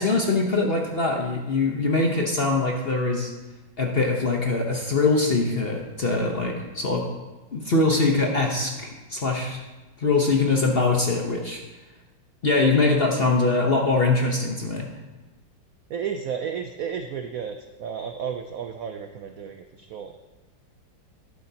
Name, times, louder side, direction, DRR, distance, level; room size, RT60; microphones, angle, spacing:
voice 1, 0.0-3.3 3.8-7.0 7.5-9.6 10.0-11.6 12.4-14.9, left 3 dB, 40° left, 0 dB, 0.9 m, -23 dB
voice 2, 15.9-20.1, right 7 dB, 75° right, 6 dB, 0.8 m, -32 dB
12.0 x 11.5 x 2.8 m, 1.2 s
omnidirectional pair, 2.1 m